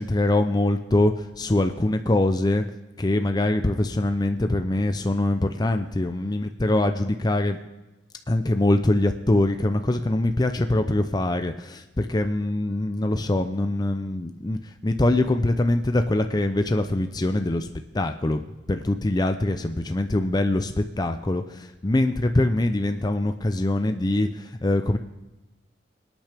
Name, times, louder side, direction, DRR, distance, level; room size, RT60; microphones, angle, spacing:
voice 1, 0.0-2.6 3.0-7.6 8.3-17.7 17.9-25.0, left 1 dB, 20° left, 7 dB, 0.5 m, -23 dB
25.5 x 9.0 x 3.4 m, 1.1 s
head